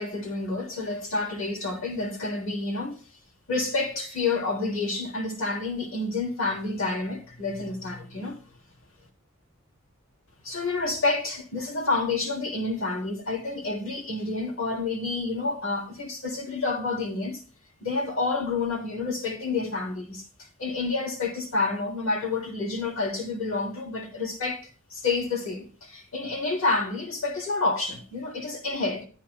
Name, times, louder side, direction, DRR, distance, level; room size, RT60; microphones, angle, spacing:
voice 1, 0.0-3.0 3.5-8.4 10.4-17.4 17.8-20.2 20.6-24.6 24.9-29.1, left 3 dB, 70° left, 3.1 m, -29 dB
12.0 x 9.4 x 2.2 m
head